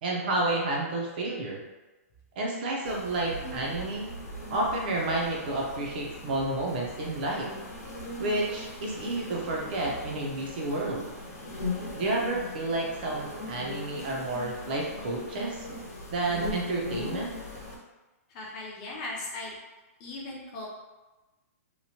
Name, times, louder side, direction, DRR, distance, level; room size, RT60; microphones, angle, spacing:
voice 1, 0.0-1.6 2.4-4.1 4.5-7.5 8.2-11.1 11.9-15.7 16.1-17.3, right 2 dB, 35° right, -1 dB, 0.5 m, -30 dB
sound 1, 2.8-17.8, left 1 dB, 80° left, 0.8 m, -39 dB
voice 2, 18.3-19.5 20.0-20.7, left 2 dB, 25° left, -3 dB, 0.4 m, -38 dB
2.8 x 2.1 x 2.7 m, 1.1 s
hypercardioid pair, 175°, 8 cm